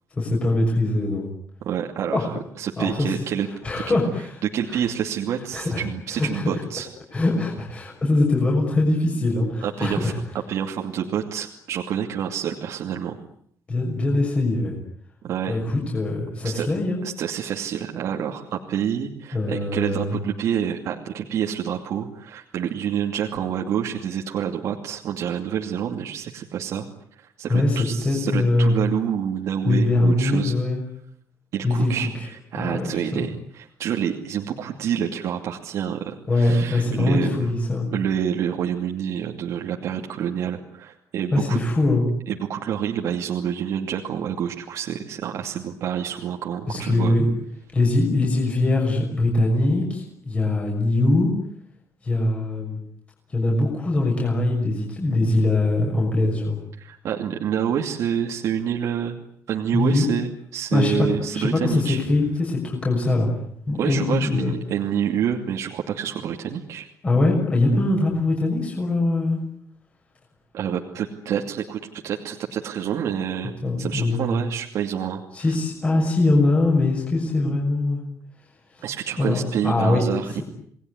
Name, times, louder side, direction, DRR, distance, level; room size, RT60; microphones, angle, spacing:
voice 1, 0.1-1.3 2.1-2.3 2.8-3.2 3.6-4.4 4.7-4.8 5.5-5.8 6.1-6.4 7.1-10.2 13.7-14.8 15.5-17.0 19.3-20.2 27.5-28.8 29.6-30.8 31.6-31.9 32.5-33.3 36.3-37.9 41.3-42.0 46.7-47.2 47.7-51.3 52.0-52.8 53.3-56.6 59.7-60.1 60.7-61.1 61.3-63.3 63.7-64.5 67.0-69.4 73.6-74.4 75.3-78.0 78.8-78.9 79.2-80.4, left 2 dB, 20° left, -1 dB, 6.5 m, -22 dB
voice 2, 1.6-3.5 3.9-4.0 4.4-6.9 9.6-10.1 10.5-13.2 15.2-15.6 16.4-16.7 17.0-26.9 27.2-30.5 31.5-37.5 37.9-41.6 42.3-47.2 56.8-59.2 59.5-62.0 63.8-66.9 70.5-73.5 73.8-75.5 78.8-80.4, right 9 dB, 65° right, 1 dB, 2.6 m, -28 dB
29.0 x 20.5 x 9.7 m, 0.67 s
cardioid pair, 170°, 6 cm